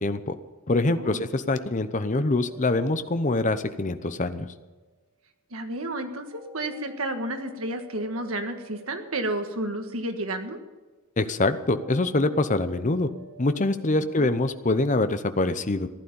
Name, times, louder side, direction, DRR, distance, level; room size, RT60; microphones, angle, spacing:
voice 1, 0.0-0.3 0.7-4.5 11.2-13.1 13.4-15.9, left 2 dB, 35° left, 11 dB, 0.8 m, -24 dB
voice 2, 0.8-1.2 5.5-10.6 14.2-14.4, right 1 dB, 75° right, 6 dB, 1.6 m, -31 dB
sound 1, 2.2-4.9 6.3-10.2 11.5-14.6, right 2 dB, 35° right, 5.4 m, -50 dB
15.0 x 11.5 x 7.0 m, 1.2 s
head